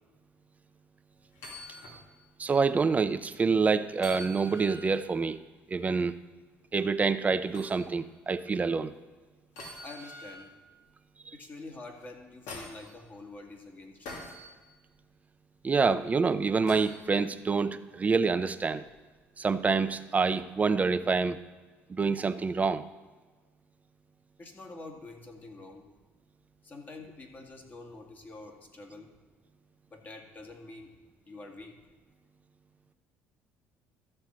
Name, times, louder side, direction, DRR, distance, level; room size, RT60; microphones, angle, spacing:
sound 1, 1.3-2.0 2.4-2.5 3.9-5.0 7.5-7.8 9.5-10.5 12.0-12.9 14.0-14.5 16.7-17.0 18.8-18.9, left 1 dB, 80° left, 2.7 m, -44 dB
voice 1, 2.4-5.4 5.7-6.1 6.7-8.9 15.6-18.8 19.4-21.4 21.9-22.8, right 4 dB, 25° right, 12 dB, 0.6 m, -27 dB
voice 2, 9.8-10.5 11.3-14.2 24.4-25.8 26.7-29.1 29.9-30.9 31.3-31.7, left 2 dB, 30° left, 2 dB, 2.1 m, -46 dB
13.0 x 4.4 x 7.6 m, 1.3 s
supercardioid pair, 85°, 6 cm